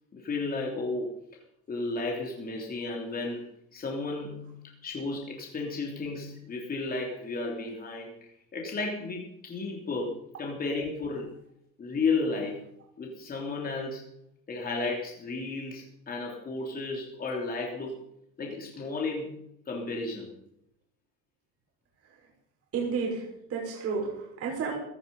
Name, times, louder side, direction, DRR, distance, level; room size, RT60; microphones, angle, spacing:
voice 1, 0.1-1.1 1.7-4.5 4.8-11.3 11.8-12.6 13.0-14.0 14.5-17.9 18.4-19.4 19.7-20.3, left 3 dB, 30° left, -1 dB, 3.3 m, -33 dB
voice 2, 22.7-24.8, right 5 dB, 50° right, -2 dB, 5.9 m, -32 dB
16.5 x 13.5 x 5.6 m, 0.75 s
cardioid pair, 130°, 30 cm